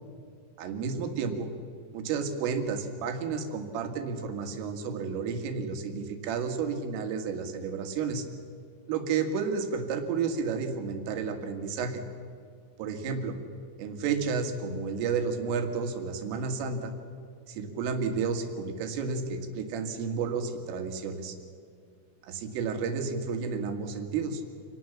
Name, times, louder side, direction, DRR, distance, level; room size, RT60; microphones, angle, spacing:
voice 1, 0.6-1.5 1.9-8.3 8.9-12.0 12.8-13.4 13.8-16.9 17.5-21.4 22.2-24.4, right 5 dB, 80° right, 5 dB, 4.5 m, -31 dB
27.0 x 19.5 x 7.3 m, 2.3 s
omnidirectional pair, 5.8 m